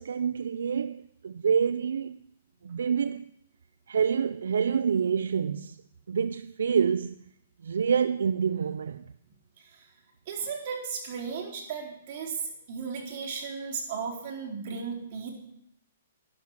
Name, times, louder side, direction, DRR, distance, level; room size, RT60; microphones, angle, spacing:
voice 1, 0.0-2.2 2.6-3.2 3.9-5.8 6.1-7.2 7.6-9.0, right 7 dB, 80° right, 0.4 m, -27 dB
voice 2, 9.6-9.9 10.3-15.3, right 6 dB, 50° right, 4.0 m, -35 dB
12.0 x 11.5 x 5.9 m
hypercardioid pair, 145°, 0 cm